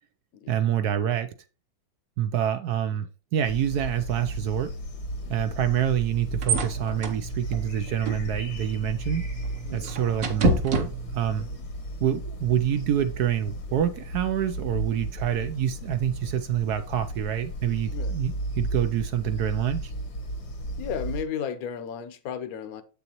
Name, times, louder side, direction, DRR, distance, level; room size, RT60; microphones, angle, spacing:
voice 1, 0.5-1.3 2.2-4.7 5.3-9.2 9.7-11.4 12.0-19.9, right 10 dB, 70° right, 0.9 m, -27 dB
sound 1, 3.4-21.2, right 1 dB, 85° left, 2.6 m, -35 dB
voice 2, 5.2-5.6 9.7-10.0 11.4-11.6 17.9-18.1 20.8-22.8, left 8 dB, 60° left, 1.1 m, -35 dB
sound 2, 5.8-11.5, right 2 dB, 50° right, 1.2 m, -30 dB
7.6 x 6.9 x 3.0 m
omnidirectional pair, 2.2 m